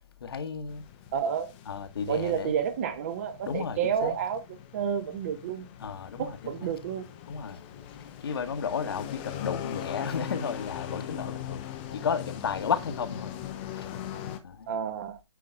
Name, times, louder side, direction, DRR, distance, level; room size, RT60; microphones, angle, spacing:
voice 1, 0.2-0.8 1.7-2.5 3.5-4.1 5.8-6.7 7.3-7.6 8.0-11.6 11.9-13.3 13.8-13.9 14.4-14.8, left 6 dB, 50° left, 1.3 m, -33 dB
sound 1, 0.7-14.4, left 11 dB, 20° left, 0.8 m, -41 dB
voice 2, 1.1-1.5 2.1-4.4 4.7-5.7 6.2-7.1 14.7-15.2, right 8 dB, 30° right, 0.9 m, -30 dB
8.4 x 3.7 x 4.5 m
hypercardioid pair, 150°, 16 cm